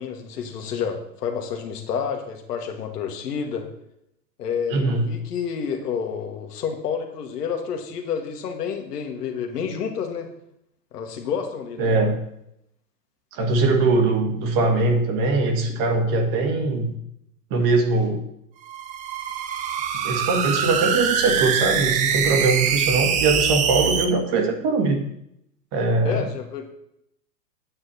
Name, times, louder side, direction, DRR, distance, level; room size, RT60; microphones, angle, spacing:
voice 1, 0.0-3.6 4.4-10.3 10.9-11.9 26.0-26.7, left 7 dB, 70° left, 4 dB, 1.9 m, -29 dB
voice 2, 4.7-5.1 11.8-12.2 13.3-16.9 17.5-18.2 20.0-25.0 25.7-26.3, right 3 dB, 40° right, 4 dB, 1.7 m, -21 dB
sound 1, 18.6-24.1, right 7 dB, 15° right, 0.4 m, -23 dB
8.8 x 8.1 x 4.3 m, 0.76 s
hypercardioid pair, 115°, 49 cm